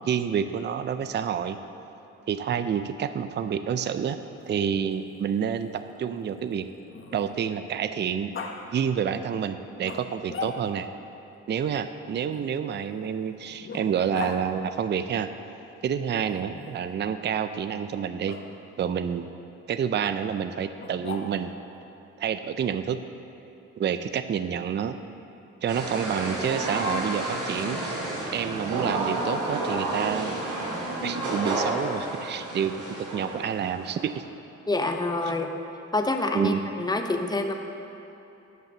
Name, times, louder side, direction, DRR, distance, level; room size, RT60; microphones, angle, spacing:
voice 1, 0.1-1.6 2.3-4.2 4.5-6.7 7.1-8.3 8.7-10.9 11.5-15.3 15.8-18.4 18.8-19.3 19.7-21.5 22.2-23.0 23.8-25.0 25.6-28.0 28.3-30.4 31.0-34.2 36.3-36.6, right 8 dB, 35° right, 11 dB, 0.5 m, -28 dB
Growling, 4.2-7.6 8.3-8.5 9.8-10.9 12.3-14.4 16.2-16.9 18.2-18.4 20.8-21.6, left 4 dB, 40° left, 1.2 m, -40 dB
sound 1, 25.7-34.2, right 2 dB, 85° right, 2.5 m, -31 dB
voice 2, 34.7-35.5 35.9-37.5, left 2 dB, 15° left, 4 dB, 0.9 m, -27 dB
10.5 x 5.8 x 6.8 m, 2.9 s
cardioid pair, 90°, 30 cm